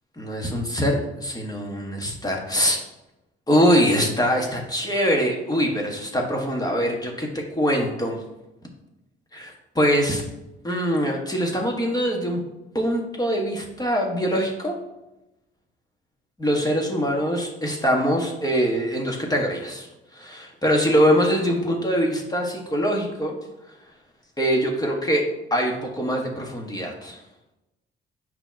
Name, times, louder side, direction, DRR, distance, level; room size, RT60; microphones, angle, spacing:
voice 1, 0.2-2.8 3.5-8.2 9.3-10.2 10.6-12.4 12.7-14.8 16.4-19.9 20.1-23.3 24.4-25.2 25.5-27.2, equal, 20° left, 0 dB, 1.3 m, -23 dB
6.9 x 3.0 x 5.7 m, 0.95 s
cardioid pair, 90°, 20 cm